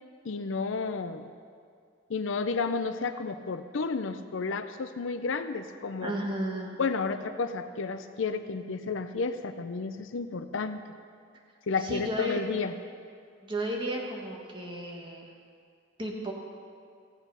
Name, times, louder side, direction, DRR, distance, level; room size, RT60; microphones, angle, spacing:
voice 1, 0.2-1.3 2.1-6.1 6.8-10.8 11.7-12.7, left 4 dB, 75° left, 10 dB, 0.5 m, -32 dB
voice 2, 6.0-6.8 11.8-12.4 13.4-15.3 16.0-16.3, right 1 dB, 25° right, -1 dB, 1.6 m, -33 dB
15.5 x 8.2 x 5.6 m, 2.2 s
head